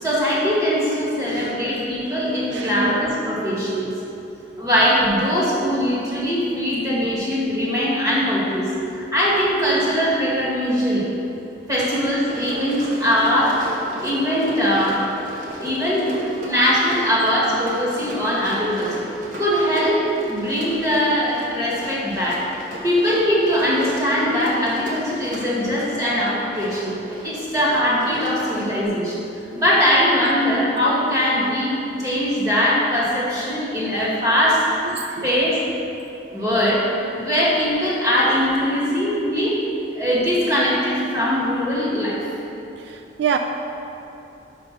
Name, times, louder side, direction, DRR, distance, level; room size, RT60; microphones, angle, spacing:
voice 1, 0.0-3.9 4.6-11.0 11.7-13.6 14.0-15.0 15.6-18.9 19.4-20.0 20.3-22.4 22.8-26.9 27.2-29.3 29.6-31.7 32.0-34.6 35.2-35.6 36.3-36.8 37.1-39.6 39.9-42.2, equal, 20° right, -7 dB, 1.7 m, -21 dB
voice 2, 1.3-1.9 2.5-2.9 6.3-6.4 25.7-25.8 29.3-29.6 34.9-35.4 36.2-36.3 42.8-43.4, right 8 dB, 75° right, 5 dB, 0.3 m, -29 dB
Run, 12.2-28.9, equal, 45° right, 1.0 m, -36 dB
5.5 x 5.1 x 5.9 m, 2.8 s
head